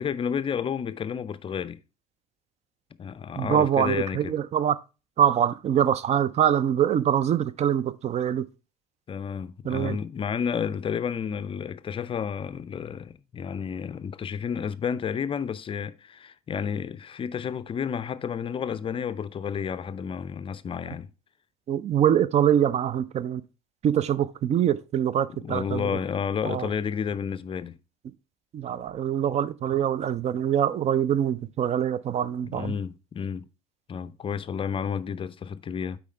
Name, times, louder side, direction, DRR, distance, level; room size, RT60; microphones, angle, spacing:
voice 1, 0.0-1.8 3.0-4.4 9.1-21.1 25.3-27.8 32.4-33.5 33.9-36.0, left 7 dB, 30° left, 0.5 m, -31 dB
voice 2, 3.4-4.8 5.2-8.5 9.6-10.0 21.7-23.4 23.8-25.9 26.4-26.7 28.5-32.7, right 9 dB, 35° right, 0.5 m, -24 dB
8.2 x 4.7 x 3.3 m
figure-of-eight pair, 60°, 19 cm